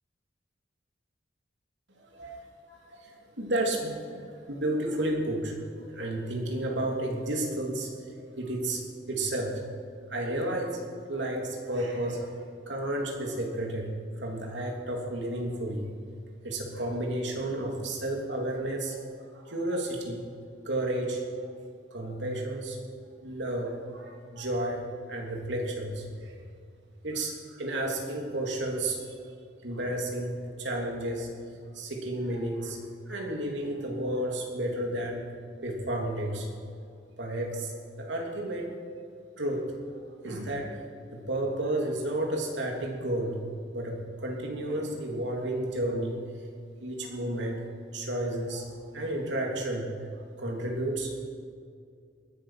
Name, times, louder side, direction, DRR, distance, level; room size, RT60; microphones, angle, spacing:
voice 1, 2.0-7.9 8.1-8.8 9.1-9.6 10.1-10.8 11.1-12.3 12.7-15.9 16.4-20.3 20.6-21.2 21.9-22.8 23.2-26.4 27.0-29.2 29.6-31.3 31.6-35.3 35.6-36.5 37.2-38.7 39.4-39.7 40.2-40.8 41.1-43.4 43.7-46.5 46.8-50.0 50.4-51.1, right 1 dB, 75° right, 0 dB, 3.1 m, -32 dB
19.5 x 11.5 x 5.8 m, 2.3 s
head